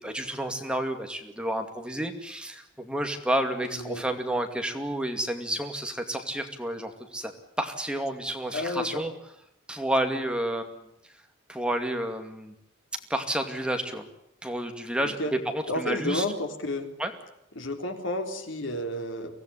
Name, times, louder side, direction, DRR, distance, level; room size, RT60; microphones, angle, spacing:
voice 1, 0.0-7.3 7.6-9.1 9.7-10.8 11.5-12.5 13.1-14.0 14.4-15.2 15.5-16.2 17.0-17.1, right 1 dB, 5° right, 5 dB, 2.4 m, -30 dB
voice 2, 3.6-4.2 8.5-9.1 15.0-15.3 15.7-16.9 17.6-19.3, left 1 dB, 70° left, 5 dB, 3.7 m, -31 dB
24.0 x 17.5 x 9.9 m, 0.79 s
head